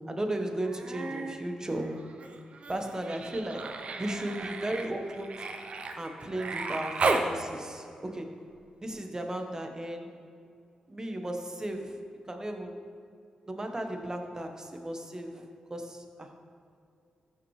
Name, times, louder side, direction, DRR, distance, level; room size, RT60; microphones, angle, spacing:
voice 1, 0.1-2.1 2.7-3.6 4.0-5.4 6.0-8.3 8.8-10.1 10.9-12.0 12.3-12.8 13.5-16.3, right 1 dB, 25° right, 4 dB, 1.2 m, -35 dB
Human voice, 0.6-1.4 1.7-7.3 8.9-9.0, right 3 dB, 55° right, 0.7 m, -34 dB
14.5 x 5.9 x 3.3 m, 2.5 s
supercardioid pair, 50°, 2 cm